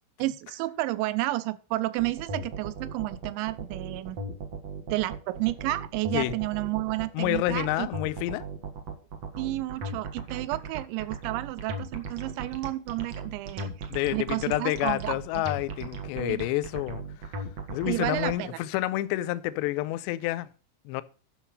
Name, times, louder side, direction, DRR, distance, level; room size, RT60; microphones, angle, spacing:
voice 1, 0.2-4.2 4.9-7.9 9.4-13.7 14.1-15.4 16.2-16.4 17.9-18.6, right 18 dB, 90° right, 3.0 m, -31 dB
sound 1, 2.0-18.3, right 3 dB, 60° right, 1.8 m, -37 dB
voice 2, 7.1-8.4 13.9-17.0 17.7-20.5 20.9-21.0, left 16 dB, 80° left, 2.7 m, -29 dB
11.0 x 6.6 x 5.5 m
omnidirectional pair, 5.2 m